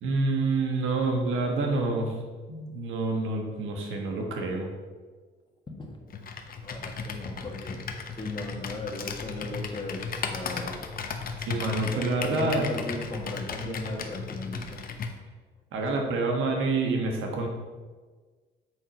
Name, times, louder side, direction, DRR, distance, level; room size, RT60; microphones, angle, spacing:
voice 1, 0.0-2.2 2.5-4.7 11.4-12.7 15.7-17.5, right 3 dB, 85° right, 2 dB, 1.4 m, -27 dB
Computer keyboard, 6.1-15.2, left 4 dB, 45° left, 0.9 m, -36 dB
voice 2, 6.6-7.8 8.2-10.8 11.9-14.8, left 2 dB, 25° left, 1 dB, 1.6 m, -37 dB
7.9 x 4.4 x 5.2 m, 1.4 s
cardioid pair, 90°, 20 cm